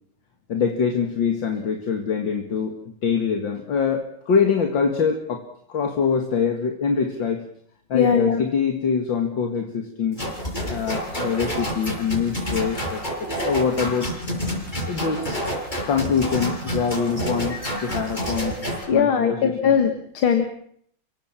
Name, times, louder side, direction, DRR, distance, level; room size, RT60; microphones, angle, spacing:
voice 1, 0.5-2.7 3.0-7.4 7.9-10.2 10.7-14.1 14.9-18.6 18.9-19.7, left 6 dB, 65° left, 4 dB, 2.7 m, -24 dB
voice 2, 7.9-8.4 18.9-20.5, left 7 dB, 85° left, 7 dB, 2.6 m, -19 dB
sound 1, 10.2-18.8, equal, 20° left, 6.2 m, -28 dB
30.0 x 17.5 x 7.4 m, 0.66 s
omnidirectional pair, 2.2 m